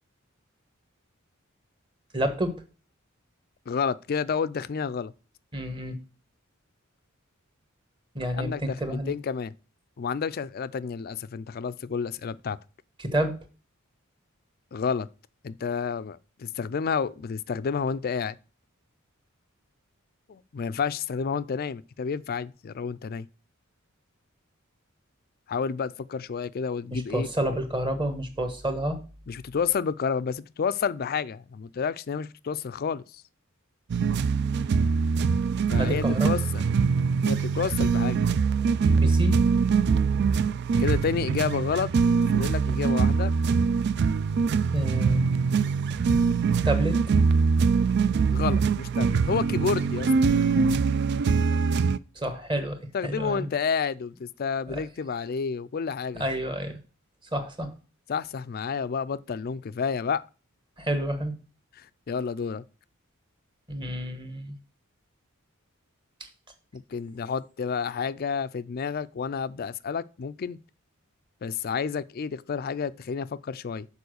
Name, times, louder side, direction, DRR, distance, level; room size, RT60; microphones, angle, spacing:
voice 1, 2.1-2.5 5.5-6.0 8.1-9.1 13.0-13.4 26.9-29.0 35.8-36.3 39.0-39.4 44.7-45.2 46.6-47.0 52.1-53.5 54.7-54.8 56.1-56.8 57.3-57.7 60.8-61.3 63.7-64.5 66.2-66.3, right 1 dB, 25° right, 1.2 m, -29 dB
voice 2, 3.7-5.1 8.3-9.5 10.0-12.6 14.7-15.1 15.4-18.4 20.3-23.3 25.5-27.3 29.3-33.2 35.7-36.6 37.2-38.2 40.8-41.9 42.3-43.3 48.3-50.1 52.9-56.2 58.1-60.2 61.8-62.6 66.7-70.6 71.4-73.9, left 6 dB, 45° left, 0.4 m, -30 dB
sound 1, 33.9-52.0, right 5 dB, 50° right, 0.3 m, -23 dB
7.0 x 4.8 x 6.4 m
head